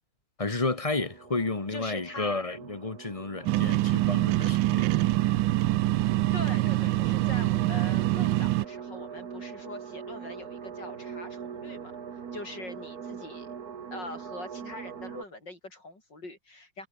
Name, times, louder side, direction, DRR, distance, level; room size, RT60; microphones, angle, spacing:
voice 1, 0.4-4.9 5.2-5.4, left 3 dB, 20° left, 1.3 m, -32 dB
sound 1, 0.8-15.2, right 7 dB, 55° right, 2.0 m, -42 dB
voice 2, 1.7-2.4 6.3-11.9 12.3-13.5 13.9-16.9, left 2 dB, 65° left, 7.8 m, -43 dB
sound 2, 3.5-8.6, right 16 dB, 80° right, 1.3 m, -25 dB
omnidirectional pair, 2.0 m